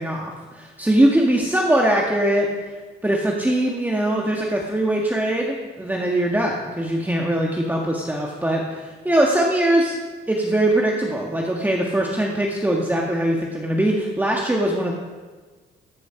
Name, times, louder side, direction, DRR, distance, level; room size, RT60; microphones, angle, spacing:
voice 1, 0.0-2.5 3.0-9.9 10.3-14.9, right 1 dB, 10° right, -1 dB, 1.6 m, -21 dB
14.5 x 6.8 x 5.8 m, 1.4 s
cardioid pair, 90°, 20 cm